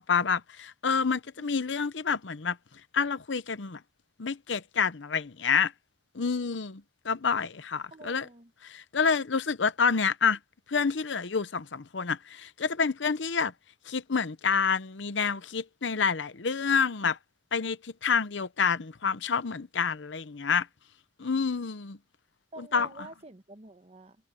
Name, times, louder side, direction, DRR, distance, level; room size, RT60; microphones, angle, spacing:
voice 1, 0.0-2.6 2.9-3.8 4.2-5.7 6.1-8.3 8.6-10.4 10.7-13.5 13.9-17.2 17.5-20.7 21.2-22.0 22.6-22.9, left 5 dB, 75° left, 0.8 m, -28 dB
voice 2, 7.9-8.5 22.5-24.2, right 2 dB, 35° right, 1.1 m, -47 dB
head